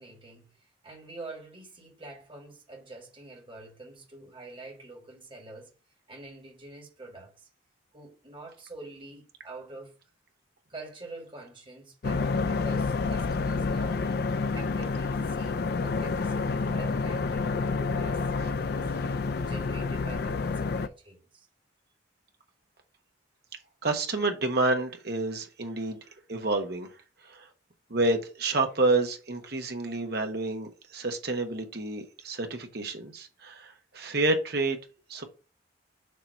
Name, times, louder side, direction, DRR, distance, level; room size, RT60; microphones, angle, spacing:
voice 1, 0.0-5.7 6.1-7.5 7.9-9.9 10.7-14.1 14.5-18.9 19.4-21.5, right 2 dB, 25° right, 1.7 m, -46 dB
sound 1, 12.0-20.9, left 4 dB, 55° left, 0.4 m, -29 dB
voice 2, 23.8-26.0 26.3-27.0 27.2-27.5 27.9-34.8 35.1-35.2, right 2 dB, 55° right, 1.1 m, -29 dB
6.6 x 2.9 x 5.2 m
head